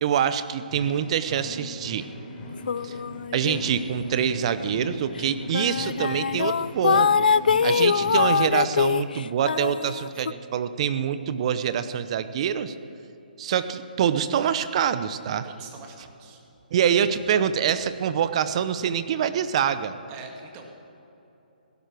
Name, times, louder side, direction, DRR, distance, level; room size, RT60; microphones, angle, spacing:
voice 1, 0.0-2.1 2.8-3.0 3.3-7.3 7.6-12.7 13.4-15.5 16.7-20.0, right 8 dB, 40° right, 12 dB, 0.8 m, -25 dB
sound 1, 0.7-8.5, left 1 dB, 25° left, 3.8 m, -39 dB
sound 2, 2.7-4.0 4.4-4.6 5.2-5.3 5.5-10.3, left 6 dB, 65° left, 0.3 m, -23 dB
voice 2, 15.4-16.4 20.1-20.6, right 5 dB, 25° right, 2 dB, 1.9 m, -43 dB
17.0 x 11.5 x 6.2 m, 2.9 s
hypercardioid pair, 150°, 5 cm